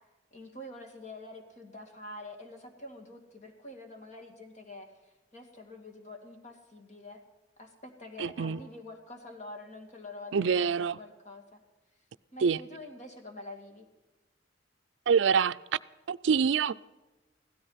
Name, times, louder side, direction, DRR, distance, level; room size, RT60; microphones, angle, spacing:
voice 1, 0.3-4.9 5.3-7.2 7.6-11.6 12.3-13.9, left 2 dB, 40° left, 2.2 m, -46 dB
voice 2, 8.2-8.6 10.3-11.0 12.4-12.6 15.1-15.6 16.1-16.7, right 6 dB, 80° right, 0.4 m, -25 dB
16.0 x 13.5 x 5.7 m
head